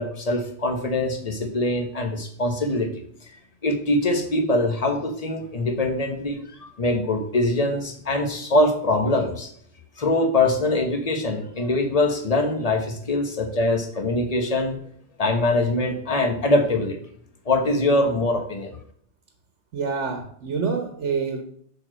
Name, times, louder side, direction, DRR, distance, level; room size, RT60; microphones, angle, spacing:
voice 1, 0.0-2.9 3.6-9.5 10.0-14.8 15.2-17.0 17.5-18.7, left 2 dB, 35° left, 5 dB, 1.2 m, -23 dB
voice 2, 19.7-21.4, right 5 dB, 85° right, 6 dB, 1.3 m, -27 dB
7.0 x 4.8 x 6.2 m, 0.63 s
omnidirectional pair, 1.2 m